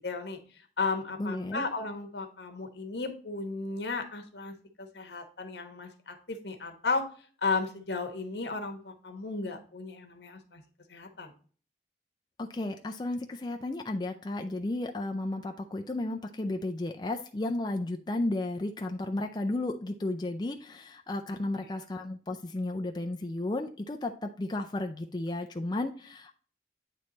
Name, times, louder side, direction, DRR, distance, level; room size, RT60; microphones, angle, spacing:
voice 1, 0.0-7.1 7.4-10.6 10.9-11.3, left 4 dB, 75° left, 5 dB, 1.2 m, -34 dB
voice 2, 1.2-1.7 12.4-26.3, left 2 dB, 25° left, 4 dB, 0.4 m, -33 dB
9.1 x 3.3 x 3.9 m, 0.43 s
head